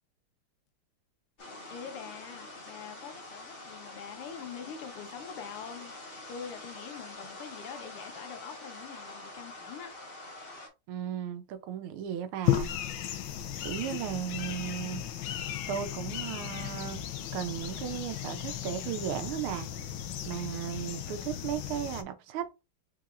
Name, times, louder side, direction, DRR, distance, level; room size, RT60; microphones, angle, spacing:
sound 1, 1.4-10.7, left 2 dB, 30° left, 1.2 m, -46 dB
voice 1, 1.7-6.0 6.3-9.9, left 7 dB, 85° left, 1.8 m, -44 dB
voice 2, 10.9-12.7 13.6-15.0 15.7-19.7 20.2-22.5, right 9 dB, 80° right, 1.5 m, -36 dB
sound 2, 12.4-22.0, left 11 dB, 70° left, 1.2 m, -35 dB
4.7 x 3.8 x 2.4 m
omnidirectional pair, 2.4 m